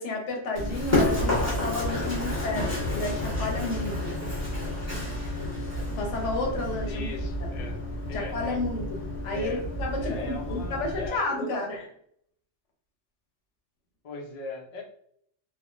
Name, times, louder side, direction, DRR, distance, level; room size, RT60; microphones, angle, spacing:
voice 1, 0.0-4.1 5.9-7.1 7.4-7.7 8.1-9.0 9.2-11.8, left 2 dB, 80° left, 1 dB, 1.1 m, -31 dB
Run, 0.5-11.1, left 1 dB, 15° left, 1.1 m, -30 dB
voice 2, 6.8-7.8 8.1-8.6 9.3-9.6 10.0-11.8 14.0-14.8, left 2 dB, 50° left, 1 dB, 0.5 m, -39 dB
3.4 x 2.1 x 2.4 m, 0.67 s
omnidirectional pair, 1.2 m